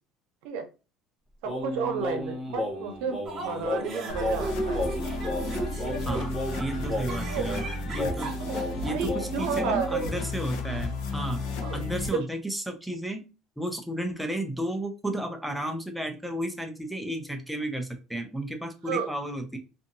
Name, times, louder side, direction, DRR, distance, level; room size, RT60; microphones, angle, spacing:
Singing, 1.4-10.1, left 1 dB, 20° left, 0.9 m, -34 dB
voice 1, 1.4-4.8 6.0-6.2 7.3-7.5 8.4-8.6 8.9-10.1 11.6-11.8 18.9-19.1, right 5 dB, 75° right, 5 dB, 0.7 m, -32 dB
sound 1, 3.2-8.9, right 2 dB, 25° right, 0.8 m, -36 dB
sound 2, 4.1-12.1, left 2 dB, 65° left, 0.6 m, -34 dB
voice 2, 6.1-8.4 8.8-11.4 11.7-13.2 13.6-19.6, right 1 dB, ahead, 3 dB, 0.3 m, -33 dB
2.7 x 2.6 x 2.6 m, 0.32 s
cardioid pair, 175°, 0 cm